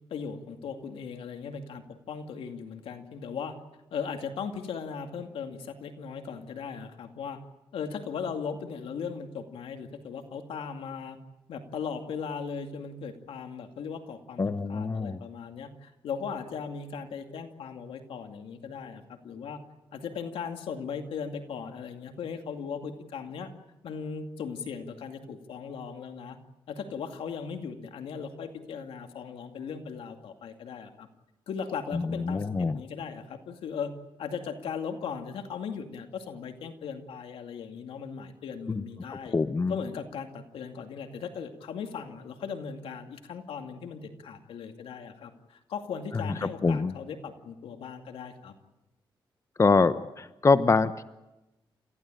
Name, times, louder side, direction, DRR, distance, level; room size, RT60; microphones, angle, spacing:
voice 1, 0.1-3.6 3.9-7.4 7.7-11.2 11.5-19.6 19.9-23.5 23.8-26.4 26.7-31.1 31.5-33.9 34.2-39.3 39.7-48.5, left 6 dB, 90° left, 6 dB, 2.3 m, -38 dB
voice 2, 14.4-15.2 31.9-32.8 38.7-38.8 39.1-39.7 46.4-46.9 49.6-51.0, left 4 dB, 35° left, 13 dB, 0.9 m, -25 dB
29.0 x 15.0 x 9.1 m, 0.99 s
cardioid pair, 80°, 9 cm